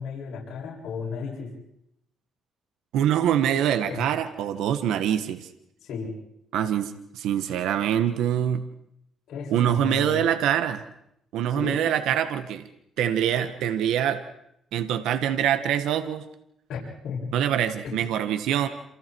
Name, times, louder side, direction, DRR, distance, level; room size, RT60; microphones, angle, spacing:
voice 1, 0.0-1.5 3.9-4.0 5.8-6.1 9.3-10.2 11.5-11.8 16.7-17.3 17.8-18.0, left 5 dB, 75° left, -5 dB, 7.6 m, -34 dB
voice 2, 2.9-5.5 6.5-8.6 9.5-10.8 11.3-12.6 13.0-14.2 14.7-16.2 17.3-18.7, right 10 dB, 85° right, 10 dB, 1.5 m, -24 dB
28.5 x 28.0 x 4.7 m, 0.77 s
cardioid pair, 90°, 0 cm